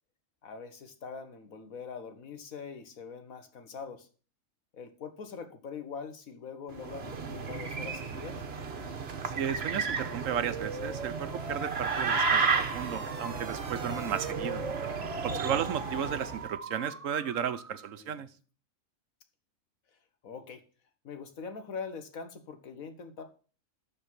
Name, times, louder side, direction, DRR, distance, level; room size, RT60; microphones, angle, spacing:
voice 1, 0.4-4.1 4.7-8.4 13.8-14.1 15.3-15.5 17.8-18.2 19.9-20.0 20.2-20.6 21.0-23.2, left 5 dB, 85° left, 8 dB, 1.7 m, -43 dB
sound 1, 6.7-16.5, right 5 dB, 50° right, 1.2 m, -33 dB
voice 2, 9.3-14.6 15.2-18.3, right 8 dB, 70° right, 12 dB, 1.1 m, -34 dB
sound 2, 10.5-18.0, right 3 dB, 30° right, 0.9 m, -41 dB
12.0 x 4.3 x 7.4 m, 0.39 s
omnidirectional pair, 1.4 m